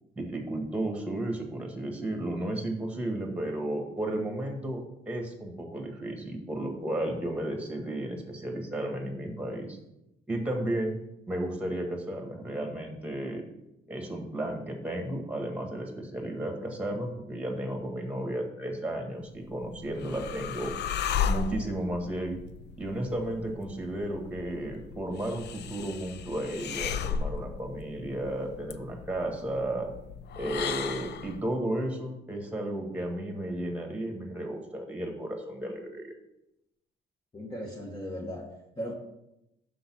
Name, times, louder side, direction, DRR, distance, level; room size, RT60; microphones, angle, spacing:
voice 1, 0.1-9.8 10.3-11.0 11.3-13.4 13.9-20.7 21.3-22.4 22.8-29.9 30.3-36.1, right 1 dB, 5° right, 2 dB, 1.6 m, -33 dB
sound 1, 19.4-31.4, left 7 dB, 60° left, 0.5 m, -36 dB
voice 2, 37.3-38.5 38.8-38.9, equal, 20° left, -2 dB, 1.2 m, -37 dB
6.4 x 3.9 x 6.1 m, 0.86 s
cardioid pair, 90°, 20 cm